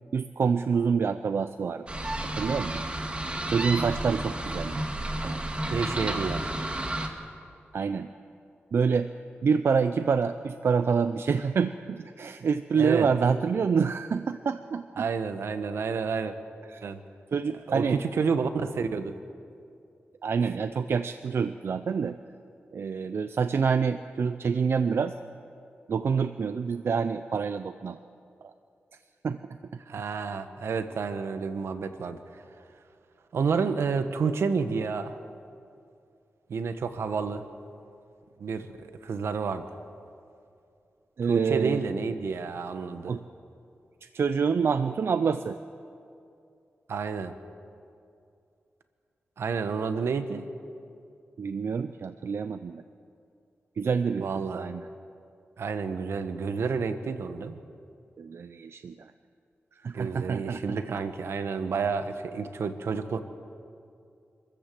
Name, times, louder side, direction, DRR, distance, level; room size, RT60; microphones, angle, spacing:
voice 1, 0.1-1.8 2.4-2.8 3.5-4.8 5.2-5.4 7.7-8.1 8.7-9.1 9.4-15.1 16.7-16.8 17.3-18.0 20.2-22.2 22.7-25.1 25.9-28.0 29.2-29.4 41.2-41.8 43.1-43.2 44.0-45.6 51.4-52.8 53.8-54.3 54.5-54.8 58.2-58.9 59.8-61.0, right 6 dB, 70° right, 11 dB, 0.6 m, -27 dB
sound 1, 1.9-7.1, right 1 dB, 25° right, 2.1 m, -31 dB
voice 2, 5.7-6.5 12.8-13.1 15.0-16.4 16.8-17.0 17.7-19.1 29.9-32.2 33.3-35.1 36.5-37.5 38.4-39.6 41.2-43.2 46.9-47.3 49.4-50.5 54.2-54.7 55.6-57.6 59.9-63.2, right 5 dB, 85° right, 9 dB, 1.2 m, -30 dB
26.0 x 14.0 x 7.7 m, 2.5 s
cardioid pair, 75°, 4 cm